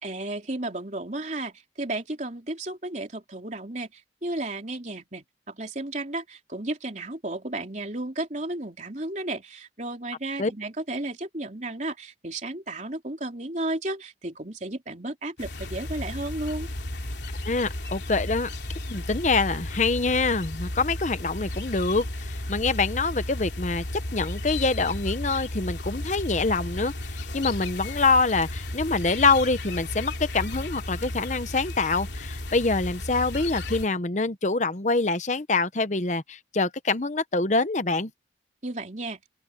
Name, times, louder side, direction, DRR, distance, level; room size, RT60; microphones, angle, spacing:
voice 1, 0.0-16.7 38.6-39.2, right 2 dB, 40° right, 3.5 m, -33 dB
sound 1, 15.4-33.9, left 1 dB, 75° left, 3.1 m, -34 dB
voice 2, 17.5-18.5 18.9-23.9 24.1-38.1, left 3 dB, 40° left, 0.9 m, -25 dB
open air
head